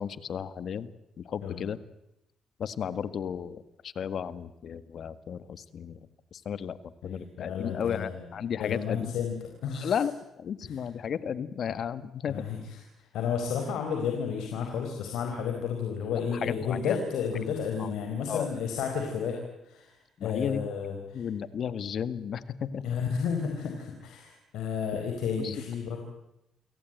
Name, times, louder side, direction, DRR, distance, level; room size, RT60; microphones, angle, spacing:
voice 1, 0.0-1.8 2.6-6.0 6.3-6.8 7.0-9.1 9.7-12.5 16.3-17.0 17.8-17.9 18.3-18.5 20.2-20.7 21.1-22.8 25.4-25.5, left 8 dB, 60° left, 14 dB, 1.7 m, -34 dB
voice 2, 7.0-8.2 8.6-9.3 9.6-9.9 10.6-10.8 12.3-19.4 19.6-21.2 22.8-26.0, left 6 dB, 85° left, 3 dB, 4.4 m, -32 dB
28.5 x 18.0 x 9.0 m, 0.87 s
cardioid pair, 90°, 0 cm